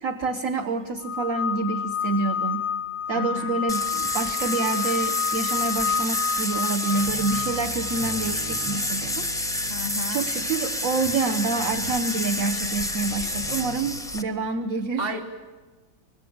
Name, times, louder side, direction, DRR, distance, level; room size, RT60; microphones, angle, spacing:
voice 1, 0.0-2.7 3.1-9.2 10.1-15.1, right 3 dB, 55° right, 5 dB, 1.3 m, -27 dB
sound 1, 1.0-8.8, left 7 dB, 25° left, 0.9 m, -30 dB
voice 2, 3.1-3.6 9.7-10.3 15.0-15.2, equal, 35° right, 6 dB, 1.8 m, -32 dB
sound 2, 3.7-14.2, left 1 dB, 5° left, 0.5 m, -29 dB
sound 3, 6.9-14.0, left 1 dB, 85° right, 3.8 m, -41 dB
25.0 x 21.0 x 8.6 m, 1.4 s
omnidirectional pair, 1.8 m